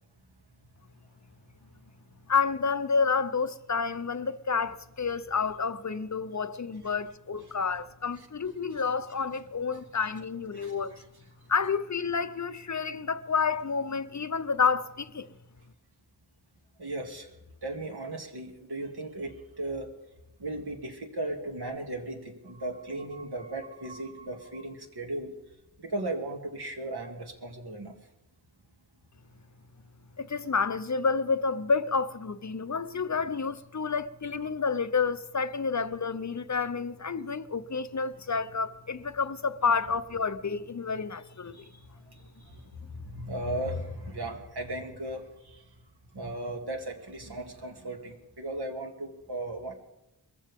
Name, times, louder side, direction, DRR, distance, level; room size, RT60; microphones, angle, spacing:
voice 1, 2.3-10.9 11.5-15.3 30.2-41.6, left 5 dB, 45° left, 0.7 m, -29 dB
voice 2, 10.5-11.0 16.8-17.3 17.6-19.9 20.4-25.3 25.8-27.9 43.1-45.3 46.1-49.7, right 1 dB, 70° right, 2.5 m, -36 dB
22.5 x 15.0 x 3.6 m
wide cardioid pair, 90°, 40 cm